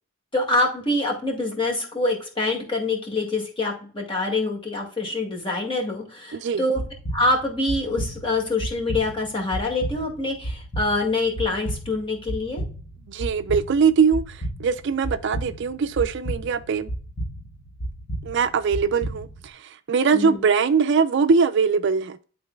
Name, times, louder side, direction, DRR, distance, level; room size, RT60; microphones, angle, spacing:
voice 1, 0.3-6.8 7.1-12.6 20.1-20.4, left 2 dB, 25° left, 2.0 m, -25 dB
voice 2, 6.3-6.6 13.1-16.9 18.2-22.2, right 5 dB, 55° right, 0.4 m, -22 dB
sound 1, 6.8-19.5, right 1 dB, 65° left, 1.1 m, -33 dB
11.5 x 3.9 x 2.3 m
head